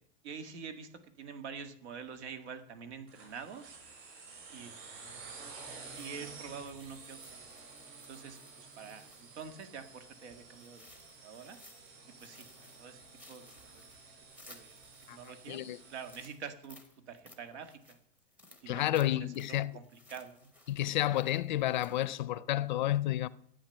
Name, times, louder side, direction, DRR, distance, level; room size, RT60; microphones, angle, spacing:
voice 1, 0.2-3.8 4.5-4.8 6.0-7.4 8.1-10.9 11.2-11.6 12.2-13.8 14.5-14.8 15.1-16.8 17.1-18.0 18.6-19.1 19.5-20.5, right 6 dB, 85° right, 2.0 m, -46 dB
sound 1, 3.1-16.3, right 4 dB, 50° right, 5.0 m, -51 dB
sound 2, 5.8-10.0 10.5-11.9 12.2-15.5 16.0-22.2, left 2 dB, 5° right, 0.7 m, -60 dB
voice 2, 15.5-15.8 18.7-19.8 20.7-23.3, left 13 dB, 45° left, 0.4 m, -31 dB
13.0 x 8.8 x 6.7 m
supercardioid pair, 180°, 33 cm